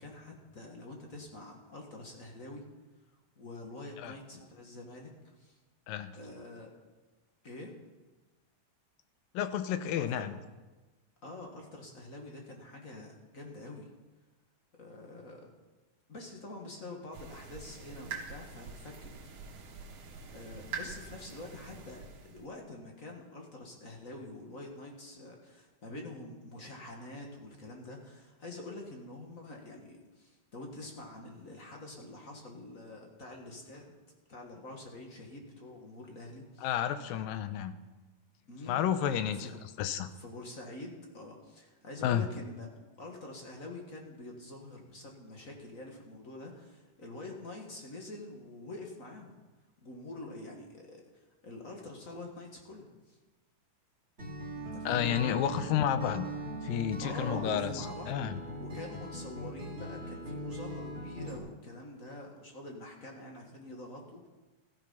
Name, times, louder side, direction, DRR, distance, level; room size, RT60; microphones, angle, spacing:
voice 1, 0.0-2.6 3.4-5.1 5.4-5.6 6.2-6.7 7.4-7.7 10.0-10.3 11.2-13.9 14.8-15.5 16.1-19.1 20.3-33.9 34.3-36.7 38.5-38.9 39.2-39.6 40.2-42.7 43.0-49.4 49.8-53.2 54.6-55.4 57.0-64.3, left 2 dB, 35° left, 1 dB, 1.5 m, -46 dB
voice 2, 9.3-10.3 36.6-37.7 38.7-39.5 39.8-40.1 42.0-42.3 54.9-56.3 56.6-58.4, left 10 dB, 85° left, 11 dB, 2.5 m, -31 dB
sound 1, 17.1-22.5, right 5 dB, 60° right, 3.3 m, -45 dB
Acoustic guitar, 54.2-61.4, right 1 dB, 20° right, 3.2 m, -40 dB
15.0 x 14.0 x 5.7 m, 1.2 s
omnidirectional pair, 4.0 m